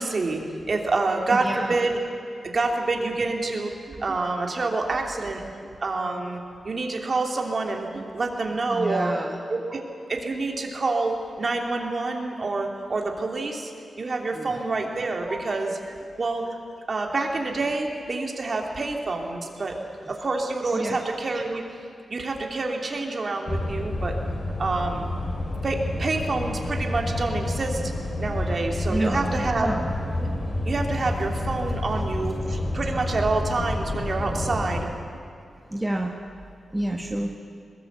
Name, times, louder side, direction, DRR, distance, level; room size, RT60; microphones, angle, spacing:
voice 1, 0.0-2.0 2.5-5.4 5.8-9.1 9.5-9.8 10.1-13.7 14.0-15.8 16.2-16.4 16.9-19.8 20.1-21.6 22.1-24.2 24.6-25.1 25.6-27.9 28.2-29.7 30.6-34.9 37.1-37.2, right 3 dB, 40° right, 2 dB, 2.9 m, -27 dB
voice 2, 1.3-1.8 8.7-9.4 14.3-14.6 15.3-15.8 20.7-21.0 28.4-28.6 28.9-30.0 35.7-36.1 36.7-37.3, right 1 dB, 10° right, 1 dB, 1.3 m, -29 dB
sound 1, 23.5-34.8, left 1 dB, 35° left, 3.0 m, -29 dB
22.5 x 20.5 x 8.3 m, 2.5 s
wide cardioid pair, 150°, 0 cm